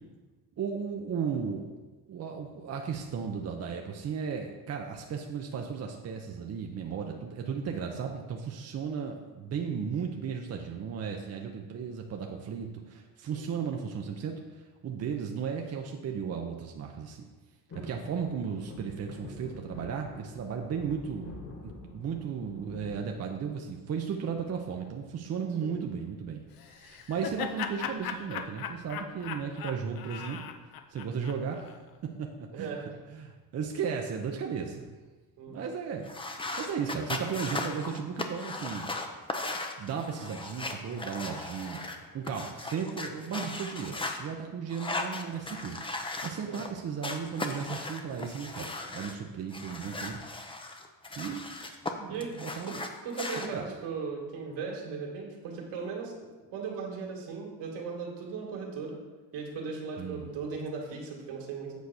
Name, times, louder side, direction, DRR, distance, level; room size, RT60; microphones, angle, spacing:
voice 1, 0.6-1.7 2.1-17.2 17.8-21.3 21.6-30.4 30.9-31.7 32.0-32.7 33.1-35.0 35.5-38.9 39.8-45.8 46.2-50.3 51.2-51.5 52.0-52.8 53.4-53.7 60.0-60.4, right 6 dB, 35° right, 2 dB, 0.7 m, -35 dB
sound 1, 17.7-23.9 24.3-24.9 26.2-26.6 26.9-27.0 27.2-27.5 28.4-29.3 29.8-29.9, left 2 dB, 40° left, 1.9 m, -47 dB
Laughter, 26.6-31.8, left 8 dB, 55° left, 0.7 m, -38 dB
voice 2, 32.5-32.9 35.4-35.6 43.3-43.4 46.5-46.6 52.1-52.3 52.6-52.8 53.0-56.2 56.5-59.0 59.3-61.8, right 5 dB, 75° right, -1 dB, 2.3 m, -37 dB
sound 2, 36.0-44.2 44.7-46.7 47.0-49.1 49.5-51.9 52.2-53.5, left 2 dB, 10° left, 0.6 m, -37 dB
8.3 x 4.1 x 6.5 m, 1.3 s
cardioid pair, 115°, 42 cm